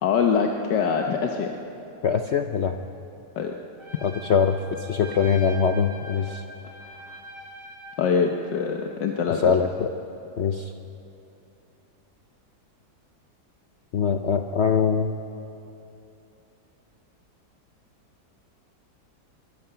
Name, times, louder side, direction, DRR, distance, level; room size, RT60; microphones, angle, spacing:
voice 1, 0.0-1.5 3.4-3.5 7.1-7.2 8.0-9.5, left 6 dB, 90° left, 2 dB, 1.7 m, -24 dB
voice 2, 2.0-2.8 4.0-6.4 9.3-9.9 10.4-10.7 13.9-15.2, left 6 dB, 60° left, 6 dB, 0.7 m, -23 dB
Trumpet, 3.8-8.0, right 1 dB, 30° right, 7.2 m, -43 dB
23.0 x 22.0 x 5.8 m, 2.9 s
omnidirectional pair, 1.8 m